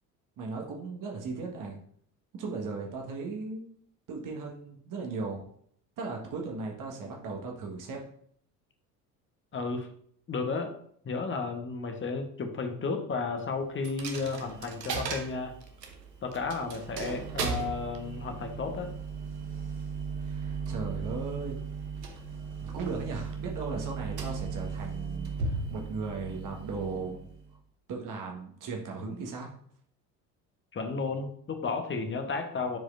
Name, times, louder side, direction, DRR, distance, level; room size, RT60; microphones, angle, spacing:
voice 1, 0.4-1.8 2.3-3.7 4.1-5.4 6.0-8.0 20.2-21.6 22.6-27.2 27.9-29.5, right 4 dB, 40° right, 0 dB, 1.6 m, -37 dB
voice 2, 9.5-9.9 10.3-10.8 11.0-15.5 16.2-18.9 30.7-32.8, left 4 dB, 25° left, 5 dB, 1.3 m, -33 dB
Coin (dropping), 13.8-27.6, right 5 dB, 80° right, 1.0 m, -37 dB
10.5 x 4.8 x 2.6 m, 0.63 s
figure-of-eight pair, 60°, 49 cm